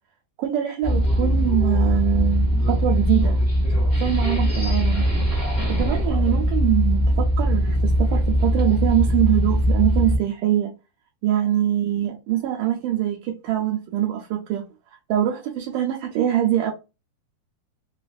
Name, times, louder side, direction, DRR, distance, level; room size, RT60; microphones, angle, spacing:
voice 1, 0.4-3.4 4.0-5.1 5.7-10.7 11.2-14.7 15.1-16.7, right 12 dB, 75° right, 1.9 m, -23 dB
sound 1, 0.8-10.2, equal, 20° right, 0.5 m, -21 dB
6.0 x 2.5 x 2.3 m
omnidirectional pair, 4.5 m